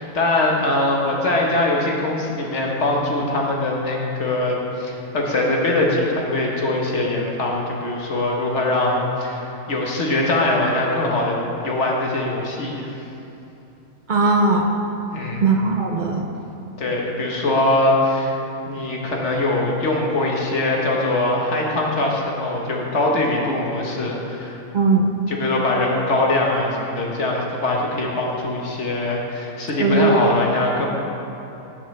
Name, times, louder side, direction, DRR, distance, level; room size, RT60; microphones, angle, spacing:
voice 1, 0.0-11.4 11.6-12.9 15.1-15.4 16.8-18.3 18.6-24.6 25.3-30.9, left 2 dB, 55° left, -2 dB, 1.5 m, -22 dB
voice 2, 14.1-14.7 15.4-16.2 24.7-25.1 29.8-30.2, right 3 dB, 50° right, 2 dB, 0.5 m, -18 dB
13.0 x 7.7 x 3.3 m, 2.9 s
omnidirectional pair, 1.5 m